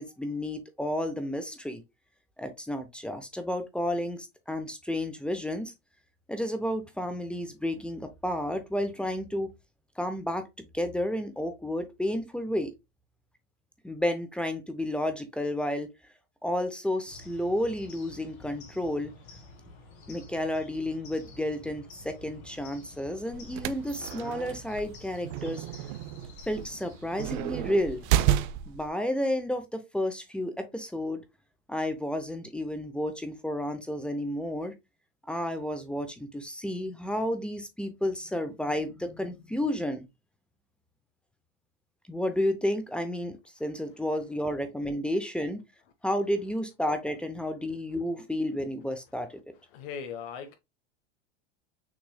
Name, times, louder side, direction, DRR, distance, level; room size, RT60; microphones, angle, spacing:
voice 1, 0.0-1.8 2.4-5.7 6.3-9.5 10.0-12.7 13.8-15.9 16.4-19.1 20.1-25.6 26.5-28.0 28.7-31.2 31.7-34.7 35.3-40.0 42.1-45.6 46.0-49.4, left 1 dB, 5° left, 0.6 m, -31 dB
sound 1, 17.1-28.4, left 2 dB, 80° left, 2.4 m, -50 dB
sound 2, 23.3-28.9, right 12 dB, 55° right, 0.5 m, -31 dB
voice 2, 49.7-50.6, left 7 dB, 65° left, 1.1 m, -38 dB
6.3 x 3.0 x 2.2 m
supercardioid pair, 125°, 31 cm